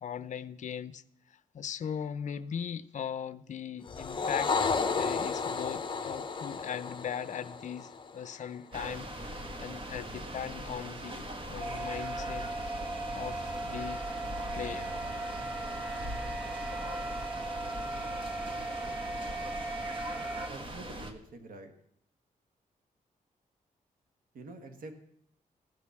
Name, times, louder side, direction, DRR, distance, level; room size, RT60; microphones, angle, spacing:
voice 1, 0.0-1.0 1.5-4.5 5.0-12.5 13.1-14.1 14.5-14.9, left 8 dB, 55° left, 0.6 m, -39 dB
sound 1, 3.9-8.5, left 5 dB, 35° left, 0.9 m, -32 dB
sound 2, 8.7-21.1, right 1 dB, 35° right, 1.5 m, -40 dB
sound 3, 11.6-20.5, right 2 dB, 10° right, 0.6 m, -38 dB
voice 2, 20.5-21.7 24.3-24.9, right 2 dB, 80° right, 1.5 m, -46 dB
15.0 x 6.7 x 7.1 m
cardioid pair, 110°, 14 cm